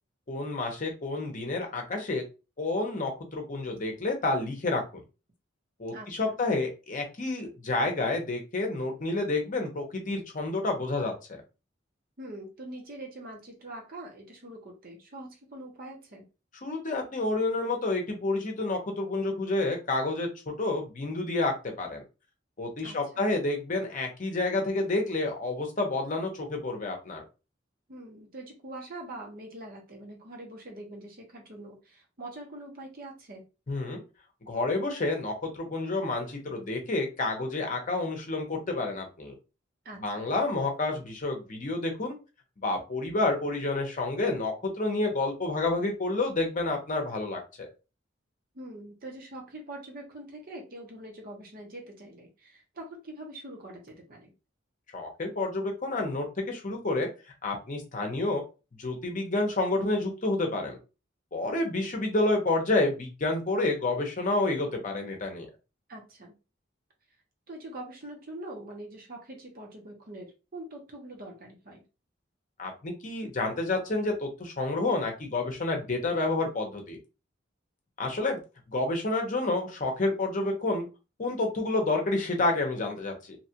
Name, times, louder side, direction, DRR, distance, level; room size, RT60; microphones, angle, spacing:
voice 1, 0.3-2.2 2.6-4.8 5.8-11.4 16.6-22.0 22.6-27.2 33.7-34.0 34.5-39.3 39.9-42.2 42.6-47.7 54.9-57.1 57.4-58.4 58.8-60.8 61.3-65.5 72.6-77.0 78.0-78.4 78.7-80.9 81.2-83.4, left 2 dB, 45° left, 3 dB, 0.8 m, -29 dB
voice 2, 5.9-6.4 12.2-16.2 22.8-23.2 27.9-33.4 39.8-40.3 48.5-54.3 65.9-66.3 67.5-71.8, right 1 dB, 50° right, 0 dB, 0.9 m, -44 dB
2.8 x 2.4 x 2.8 m, 0.30 s
head